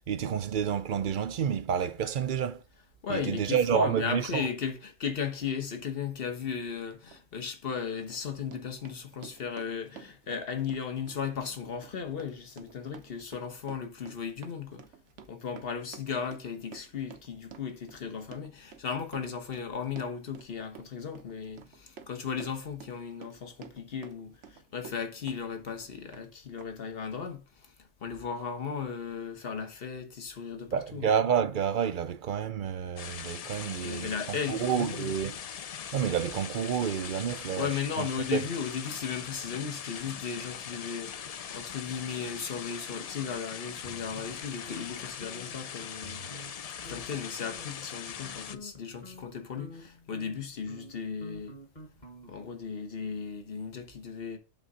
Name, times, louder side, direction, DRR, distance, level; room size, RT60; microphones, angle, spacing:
voice 1, 0.1-2.6 3.1-4.4 30.7-35.3 35.9-37.7 38.0-38.1 38.3-38.4, right 8 dB, 55° right, 0.6 m, -29 dB
voice 2, 3.0-14.8 15.3-31.1 33.7-35.1 37.3-46.3 46.9-51.6 52.3-54.4, left 6 dB, 55° left, 1.3 m, -36 dB
Run, 7.1-7.2 7.7-25.4 25.7-26.3 26.6-26.7, right 7 dB, 75° right, 1.1 m, -51 dB
sound 1, 33.0-48.6, left 8 dB, 75° left, 0.3 m, -41 dB
sound 2, 43.8-44.9 45.2-45.6 46.0-46.6 46.8-47.1 47.4-47.8 48.2-52.6, equal, 40° left, 1.8 m, -48 dB
7.8 x 3.7 x 5.3 m
omnidirectional pair, 1.2 m